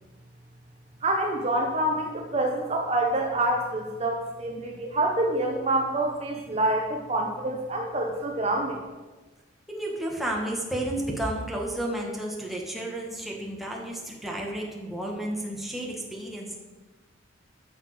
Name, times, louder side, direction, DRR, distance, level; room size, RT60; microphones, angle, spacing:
voice 1, 1.0-8.8, right 1 dB, 35° right, 0 dB, 1.2 m, -27 dB
voice 2, 9.7-16.6, right 1 dB, ahead, -2 dB, 2.2 m, -32 dB
14.0 x 6.8 x 6.3 m, 1.2 s
head